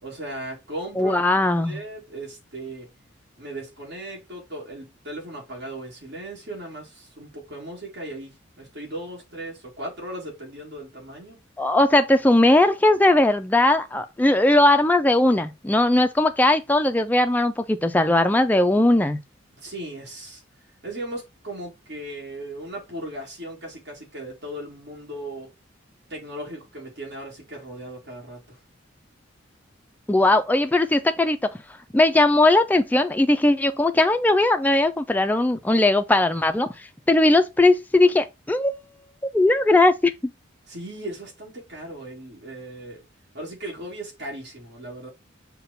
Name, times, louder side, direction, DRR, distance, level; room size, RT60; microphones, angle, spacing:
voice 1, 0.0-1.2 1.6-2.9 3.4-11.4 19.5-20.4 20.8-25.5 26.1-28.6 40.7-43.0 43.3-45.1, right 1 dB, 55° right, 1.7 m, -37 dB
voice 2, 1.0-1.8 11.6-19.2 30.1-31.5 31.9-36.7 37.1-38.7 39.3-40.1, left 2 dB, 10° left, 0.3 m, -19 dB
5.7 x 2.2 x 3.9 m
head